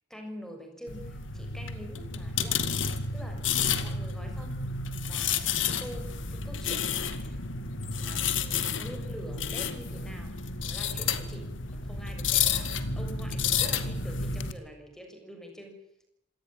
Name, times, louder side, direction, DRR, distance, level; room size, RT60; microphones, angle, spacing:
voice 1, 0.1-2.6 3.1-4.7 5.0-7.4 7.8-10.4 10.6-15.8, equal, 5° left, 4 dB, 7.1 m, -46 dB
sound 1, 0.9-14.5, left 6 dB, 90° left, 2.2 m, -31 dB
27.0 x 18.0 x 9.2 m, 0.78 s
head